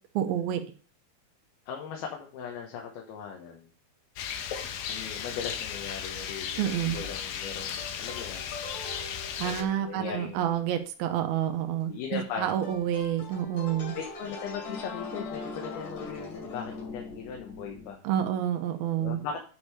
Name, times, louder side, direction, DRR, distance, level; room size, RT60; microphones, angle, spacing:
voice 1, 0.2-0.6 6.6-7.0 9.4-13.9 18.0-19.2, right 10 dB, 85° right, 6 dB, 2.6 m, -29 dB
voice 2, 1.7-3.7 4.9-8.4 9.4-10.5 11.9-12.7 13.9-18.0 19.0-19.4, left 7 dB, 90° left, 1 dB, 3.1 m, -38 dB
Rain, 4.2-9.6, left 8 dB, 75° left, 2.4 m, -36 dB
sound 1, 7.8-9.6 12.6-17.9, left 3 dB, 60° left, 3.9 m, -41 dB
8.7 x 5.4 x 4.8 m, 0.39 s
omnidirectional pair, 4.3 m